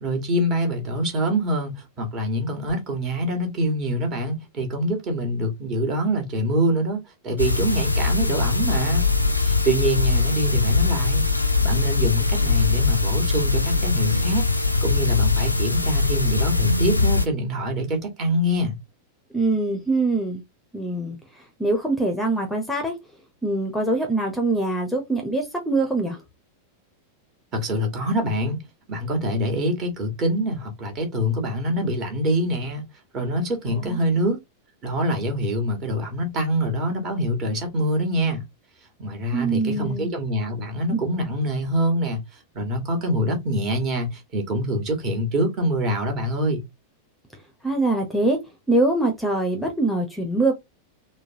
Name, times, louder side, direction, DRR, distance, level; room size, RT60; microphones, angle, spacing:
voice 1, 0.0-9.0 9.4-14.4 14.8-18.8 27.5-28.6 28.9-32.8 33.1-34.4 34.8-38.4 39.0-42.2 42.5-46.6, equal, 35° right, 1.4 m, -25 dB
sound 1, 7.4-17.3, left 3 dB, 85° left, 0.4 m, -21 dB
voice 2, 19.3-20.4 20.7-23.0 23.4-26.2 33.7-34.0 39.3-40.1 47.6-48.4 48.7-50.5, right 2 dB, 5° left, 0.7 m, -23 dB
3.8 x 2.3 x 2.7 m
figure-of-eight pair, 90°, 0 cm